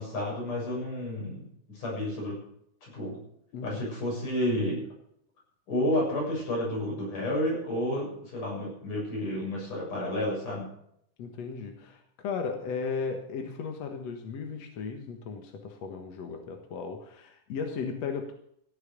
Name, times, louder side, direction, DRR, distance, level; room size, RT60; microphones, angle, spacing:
voice 1, 0.0-1.5 1.7-2.4 2.8-3.2 3.6-4.9 5.7-10.7, left 1 dB, 80° left, -3 dB, 8.9 m, -31 dB
voice 2, 3.5-3.9 11.2-18.3, left 5 dB, 60° left, 4 dB, 2.5 m, -36 dB
14.5 x 11.0 x 6.7 m, 0.70 s
omnidirectional pair, 3.6 m